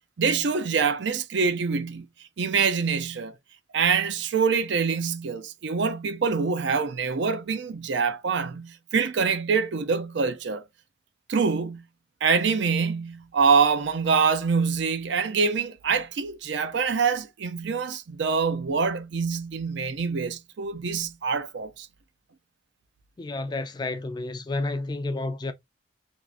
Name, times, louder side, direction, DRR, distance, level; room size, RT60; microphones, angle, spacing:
voice 1, 0.2-2.1 2.4-3.3 3.7-10.6 11.3-11.8 12.2-21.9, right 5 dB, 65° right, 0.5 m, -25 dB
voice 2, 23.2-25.5, left 2 dB, 20° left, 0.3 m, -30 dB
3.5 x 2.4 x 2.4 m
head